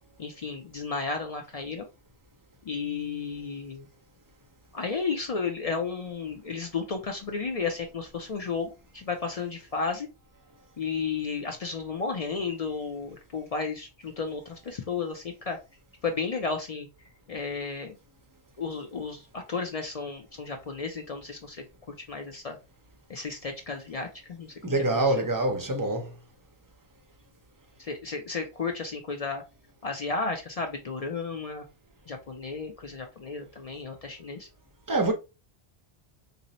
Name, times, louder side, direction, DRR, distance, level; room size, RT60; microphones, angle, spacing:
voice 1, 0.2-1.8 2.6-3.9 4.7-10.1 10.8-15.6 16.0-16.9 17.3-18.0 18.6-21.6 22.1-22.6 23.1-25.3 27.8-29.4 29.8-31.6 32.1-34.5, left 4 dB, 50° left, 0.4 m, -33 dB
voice 2, 24.6-26.1 34.9-35.1, right 2 dB, 30° right, 0.4 m, -25 dB
2.7 x 2.0 x 3.9 m
omnidirectional pair, 1.0 m